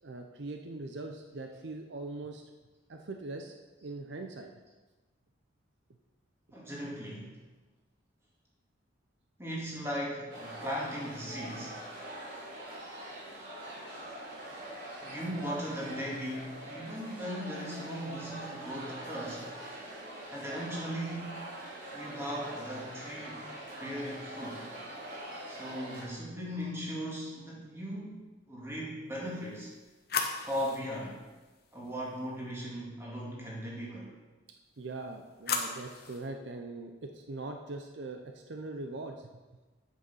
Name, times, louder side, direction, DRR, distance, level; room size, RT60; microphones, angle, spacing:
voice 1, 0.0-2.4 2.9-4.5 34.8-39.3, right 2 dB, 65° right, 4 dB, 0.6 m, -41 dB
voice 2, 6.5-7.4 9.4-11.8 15.0-19.5 20.3-21.5 21.9-24.7 25.5-29.7 30.4-31.2 31.7-34.1, equal, 15° right, -4 dB, 2.0 m, -38 dB
sound 1, 10.3-26.0, right 1 dB, 45° right, 2.6 m, -43 dB
sound 2, 29.3-32.4 34.8-36.3, left 5 dB, 50° left, 0.9 m, -38 dB
8.0 x 6.5 x 5.5 m, 1.2 s
head